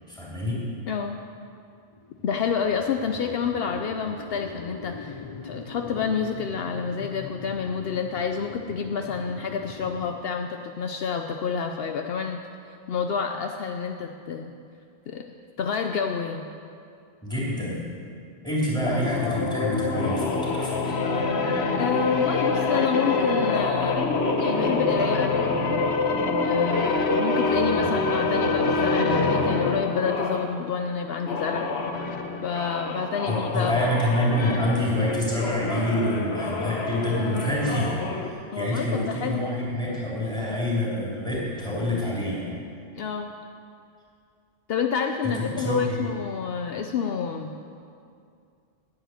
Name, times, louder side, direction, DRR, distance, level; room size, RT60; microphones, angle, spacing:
voice 1, 0.1-0.6 17.2-17.9 18.4-21.0 27.8-28.0 33.3-42.6 45.2-46.1, left 1 dB, 5° left, -6 dB, 3.5 m, -27 dB
voice 2, 0.9-1.2 2.2-12.4 12.9-14.5 15.1-15.2 15.6-16.5 21.7-24.0 24.4-25.5 26.4-31.7 32.4-33.9 38.5-39.4 42.9-43.3 44.7-47.5, left 6 dB, 70° left, 4 dB, 0.8 m, -29 dB
sound 1, 1.9-10.2, left 5 dB, 35° left, 0.6 m, -41 dB
sound 2, 18.8-30.5 31.2-38.3, left 3 dB, 85° left, 1.2 m, -26 dB
10.5 x 7.7 x 9.2 m, 2.4 s
omnidirectional pair, 1.1 m